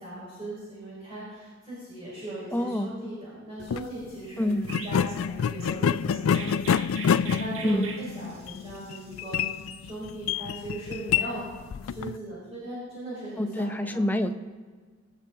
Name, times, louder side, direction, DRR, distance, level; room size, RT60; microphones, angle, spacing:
voice 1, 0.0-4.5 4.8-9.5 9.8-11.4 11.8-14.0, right 2 dB, 30° right, -9 dB, 4.9 m, -39 dB
voice 2, 2.5-2.9 4.4-4.6 7.6-7.9 13.4-14.3, left 1 dB, 10° left, 8 dB, 0.6 m, -26 dB
sound 1, 3.6-3.9 4.6-12.2, left 7 dB, 85° left, 0.3 m, -27 dB
Chirp tweet, 4.7-9.8, right 4 dB, 80° right, 2.0 m, -42 dB
24.0 x 8.4 x 3.9 m, 1.5 s
head